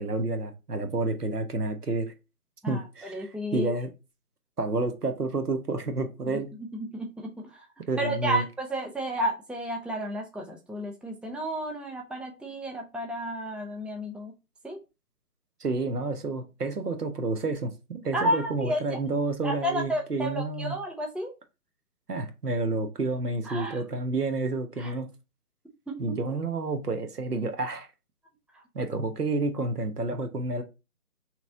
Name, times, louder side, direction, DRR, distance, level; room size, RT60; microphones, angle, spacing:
voice 1, 0.0-2.1 2.7-3.9 4.6-6.5 7.9-8.4 15.6-20.8 22.1-25.1 26.0-27.9 28.7-30.6, right 3 dB, 90° right, 0.9 m, -30 dB
voice 2, 2.6-3.7 6.3-7.6 8.0-14.3 14.6-14.8 18.1-19.0 19.4-21.3 23.5-23.8 24.8-24.9 25.9-26.2, right 1 dB, 5° right, 0.3 m, -32 dB
3.0 x 2.6 x 3.6 m
figure-of-eight pair, 160°, 45 cm